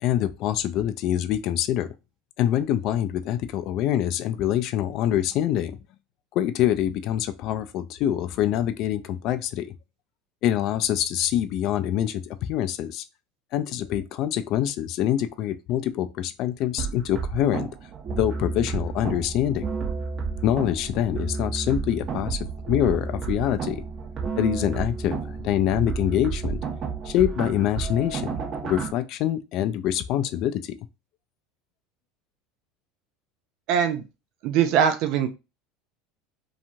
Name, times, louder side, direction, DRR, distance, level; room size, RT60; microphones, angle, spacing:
voice 1, 0.0-1.9 2.4-5.8 6.3-9.7 10.4-13.0 13.5-17.7 18.1-19.7 20.4-22.4 22.7-23.8 24.4-26.6 27.0-28.3 28.6-30.7, left 11 dB, 55° left, 0.3 m, -25 dB
sound 1, 16.8-28.9, right 5 dB, 45° right, 0.9 m, -31 dB
voice 2, 33.7-34.0 34.4-35.3, right 8 dB, 60° right, 0.4 m, -21 dB
2.9 x 2.4 x 2.6 m
hypercardioid pair, 80°, 0 cm